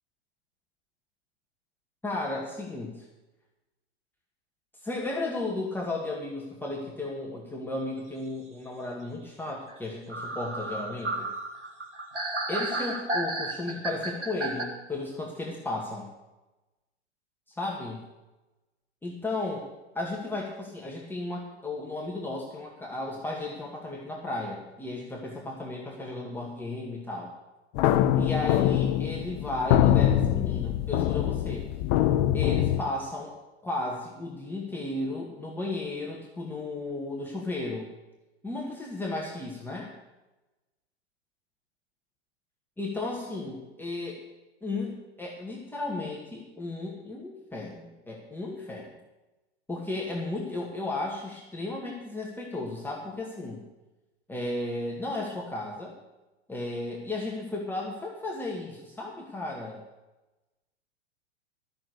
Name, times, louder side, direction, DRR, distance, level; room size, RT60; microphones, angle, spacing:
voice 1, 2.0-3.1 4.8-11.3 12.5-16.1 17.6-18.0 19.0-19.6 19.9-27.3 28.1-31.7 32.3-33.4 33.6-37.9 38.4-39.9 42.8-44.2 44.6-49.0 49.7-53.6 54.3-56.0 56.5-59.8, left 2 dB, 5° left, -3 dB, 2.1 m, -34 dB
sound 1, 9.7-9.8 10.1-14.6, right 2 dB, 85° right, 2.4 m, -32 dB
sound 2, 27.7-32.8, left 11 dB, 40° left, 0.8 m, -24 dB
14.0 x 6.8 x 8.3 m, 1.1 s
figure-of-eight pair, 100°, 34 cm